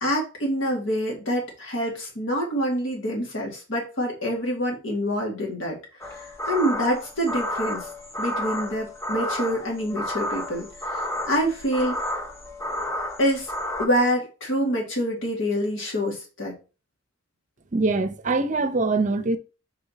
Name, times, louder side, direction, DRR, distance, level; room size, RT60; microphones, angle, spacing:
voice 1, 0.0-5.8 6.1-7.9 8.2-10.7 10.9-12.0 13.2-13.5 13.8-16.5, equal, 70° left, 2.1 m, -26 dB
sound 1, 6.0-13.9, left 1 dB, 15° left, 0.8 m, -31 dB
voice 2, 17.7-19.4, right 3 dB, 40° right, 0.6 m, -23 dB
5.5 x 4.1 x 4.1 m
head